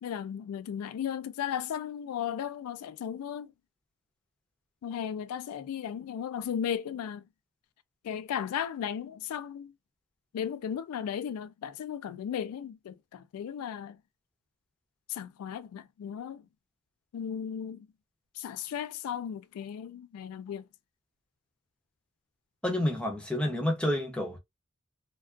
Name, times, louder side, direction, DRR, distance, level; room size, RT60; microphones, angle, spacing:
voice 1, 0.0-3.5 4.8-7.3 8.0-9.7 10.3-14.0 15.1-16.5 17.1-17.9 18.3-20.7, left 8 dB, 85° left, 0.3 m, -35 dB
voice 2, 22.6-24.4, left 1 dB, 5° left, 0.6 m, -29 dB
2.3 x 2.3 x 2.4 m
head